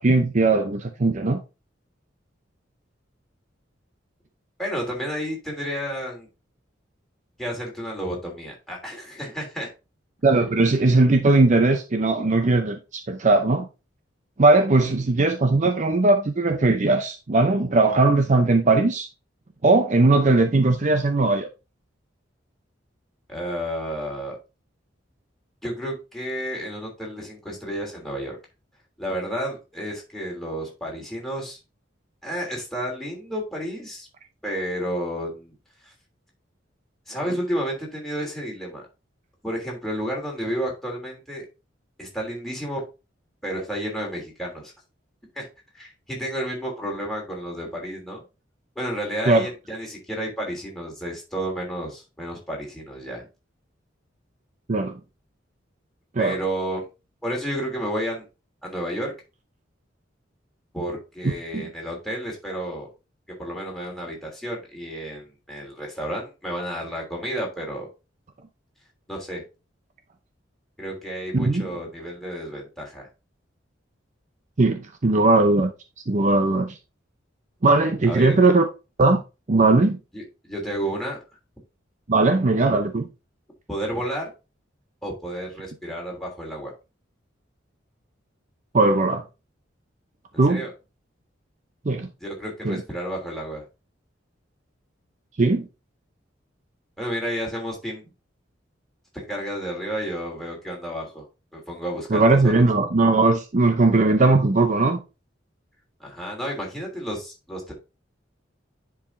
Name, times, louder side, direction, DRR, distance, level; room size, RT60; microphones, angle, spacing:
voice 1, 0.0-1.4 10.2-13.7 14.4-19.1 19.6-21.5 49.3-49.5 54.7-55.0 56.2-56.3 61.5-61.7 71.3-71.7 74.6-75.7 76.1-76.8 77.6-78.7 79.0-79.2 79.5-80.0 82.1-83.1 88.7-89.2 90.4-90.6 91.8-92.1 92.6-92.8 95.4-95.7 102.1-105.0, right 3 dB, 40° right, 0.6 m, -19 dB
voice 2, 4.6-6.3 7.4-9.7 23.3-24.4 25.6-28.4 29.0-31.6 32.2-34.1 34.4-35.5 35.8-35.9 37.1-38.8 39.4-41.5 42.0-42.8 43.4-44.7 45.3-45.5 45.7-48.2 48.7-53.3 56.2-56.8 57.2-58.2 58.6-59.1 60.7-62.9 63.4-67.9 69.1-69.4 70.8-73.1 78.1-78.4 80.1-81.2 83.7-84.3 85.0-86.7 90.5-90.7 92.2-93.6 97.0-98.1 99.1-101.2 101.5-102.6 106.0-107.7, equal, ahead, 2.9 m, -31 dB
10.0 x 4.7 x 2.6 m
head